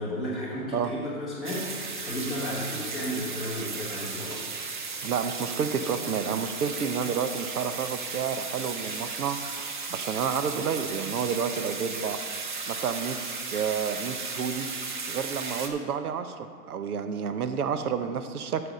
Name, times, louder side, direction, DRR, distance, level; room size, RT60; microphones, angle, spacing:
voice 1, 0.0-4.4, equal, ahead, -11 dB, 1.6 m, -33 dB
sound 1, 1.4-15.7, right 4 dB, 35° right, 0.5 m, -35 dB
voice 2, 5.0-9.4 9.9-12.2 12.7-13.2 13.5-14.7 15.1-18.6, right 7 dB, 85° right, 9 dB, 0.8 m, -30 dB
8.6 x 6.8 x 5.3 m, 2.1 s
hypercardioid pair, 170°, 44 cm